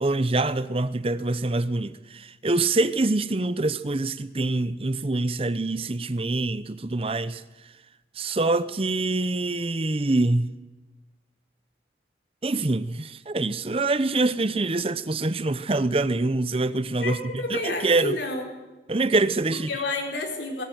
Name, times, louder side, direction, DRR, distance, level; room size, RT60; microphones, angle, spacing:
voice 1, 0.0-7.4 8.2-10.5 12.4-18.2 18.9-19.7, right 2 dB, 30° right, 0.7 m, -25 dB
voice 2, 17.0-18.4 19.7-20.6, left 2 dB, 90° left, 4.8 m, -30 dB
19.0 x 18.0 x 9.4 m
head